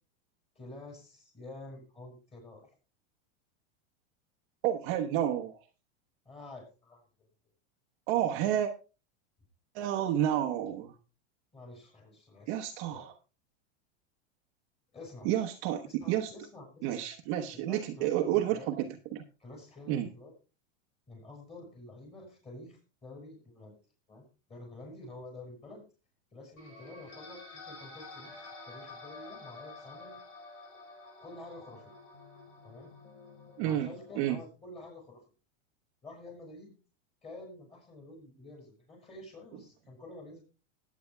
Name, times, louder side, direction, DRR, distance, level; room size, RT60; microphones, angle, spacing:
voice 1, 0.6-2.7 6.3-7.0 11.5-12.6 12.9-13.1 14.9-15.3 15.8-16.9 17.5-18.7 19.4-20.3 21.1-23.7 24.1-25.8 26.3-30.2 31.2-31.9 32.6-32.9 33.6-35.2 36.0-36.7 37.2-40.4, left 2 dB, 15° left, 1 dB, 7.0 m, -49 dB
voice 2, 4.6-5.6 8.1-8.7 9.7-10.9 12.5-13.1 15.2-16.3 16.8-19.3 19.9-20.1 33.6-33.9 34.1-34.4, right 11 dB, 45° right, 3 dB, 1.0 m, -30 dB
sound 1, 26.6-34.2, left 3 dB, 90° left, 4.5 m, -49 dB
20.0 x 9.4 x 2.2 m, 0.31 s
supercardioid pair, 150°, 37 cm